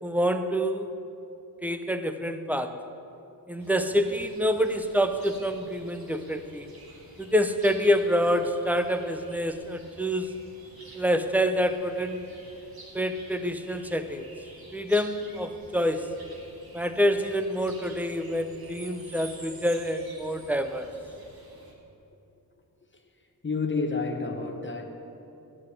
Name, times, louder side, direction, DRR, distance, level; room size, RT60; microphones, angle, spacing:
voice 1, 0.0-0.9 1.6-2.8 3.5-6.7 7.2-10.4 11.0-12.2 12.9-14.3 14.7-16.1 16.7-20.9, equal, 5° right, 8 dB, 0.6 m, -27 dB
sound 1, 3.6-21.7, right 2 dB, 75° right, 2.0 m, -50 dB
voice 2, 23.4-24.8, left 4 dB, 30° left, 4 dB, 1.0 m, -29 dB
11.5 x 7.7 x 7.7 m, 2.8 s
wide cardioid pair, 105°, 37 cm